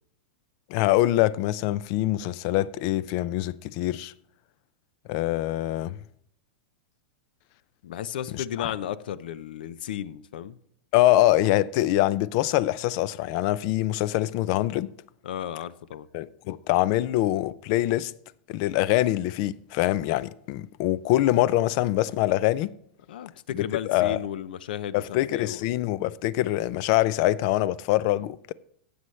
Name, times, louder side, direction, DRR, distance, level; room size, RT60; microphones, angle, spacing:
voice 1, 0.7-4.1 5.1-6.0 8.3-8.7 10.9-14.9 16.1-18.1 18.5-22.7 23.5-23.6 23.9-24.2 24.9-28.5, left 15 dB, 40° left, 0.4 m, -24 dB
voice 2, 7.8-10.6 15.2-16.1 23.1-25.0 25.3-25.7, left 10 dB, 70° left, 0.7 m, -34 dB
15.5 x 7.9 x 3.2 m
supercardioid pair, 170°, 5 cm